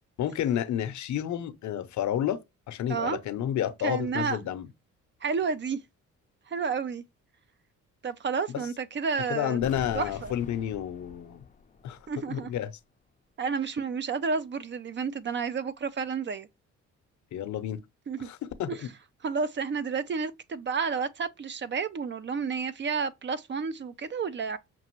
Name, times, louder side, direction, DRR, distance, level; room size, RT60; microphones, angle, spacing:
voice 1, 0.2-2.4 2.7-4.7 9.3-11.4 11.8-12.0 12.3-12.7 17.3-17.8 18.2-18.9, left 10 dB, 70° left, 0.7 m, -30 dB
voice 2, 2.9-3.2 3.8-4.4 5.2-5.8 6.5-7.0 8.0-9.7 9.9-10.3 12.1-12.5 13.4-16.5 18.1-18.3 18.7-18.8 19.2-24.6, right 5 dB, 40° right, 0.5 m, -31 dB
sound 1, 9.6-12.5 12.7-12.8, left 5 dB, 25° left, 0.5 m, -46 dB
6.0 x 2.5 x 2.9 m
cardioid pair, 90°, 30 cm